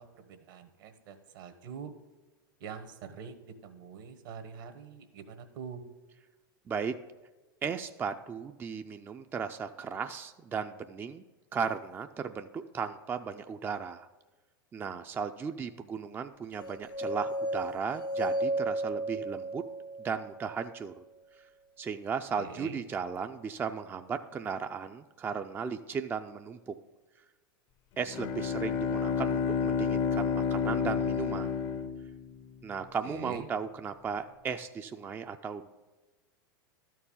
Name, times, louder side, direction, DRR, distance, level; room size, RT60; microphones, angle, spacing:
voice 1, 0.0-1.9 2.6-5.8 22.4-22.8 33.0-33.5, right 6 dB, 65° right, 9 dB, 1.2 m, -44 dB
voice 2, 7.6-11.2 11.5-14.1 14.7-19.6 20.0-21.0 21.4-21.5 21.8-26.7 28.0-31.5 32.6-35.7, right 6 dB, 20° right, 7 dB, 0.4 m, -36 dB
sound 1, 16.6-20.7, right 1 dB, 85° left, 0.7 m, -34 dB
Bowed string instrument, 28.0-32.7, left 6 dB, 45° left, 0.6 m, -30 dB
12.5 x 4.6 x 7.1 m, 1.2 s
hypercardioid pair, 100°, 12 cm